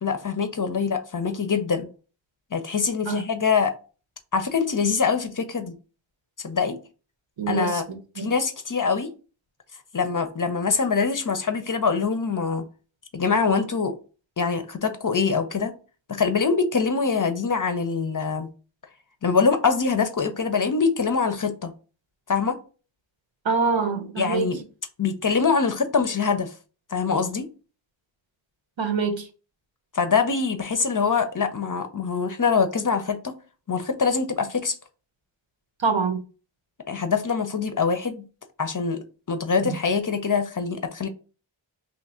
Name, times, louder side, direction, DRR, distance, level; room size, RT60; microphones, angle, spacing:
voice 1, 0.0-1.9 2.5-3.7 4.3-5.7 6.4-6.8 7.5-7.8 8.2-9.1 9.9-12.6 13.1-14.0 14.4-15.8 16.1-18.5 19.2-21.7 22.3-22.6 24.2-24.6 25.0-26.5 26.9-27.5 29.9-33.3 33.7-34.7 36.9-38.2 38.6-41.1, left 5 dB, 40° left, 0.6 m, -24 dB
voice 2, 7.4-8.3 23.4-24.5 28.8-29.3 35.8-36.2 39.6-39.7, right 5 dB, 65° right, 0.9 m, -25 dB
2.9 x 2.4 x 4.2 m
wide cardioid pair, 50°, 48 cm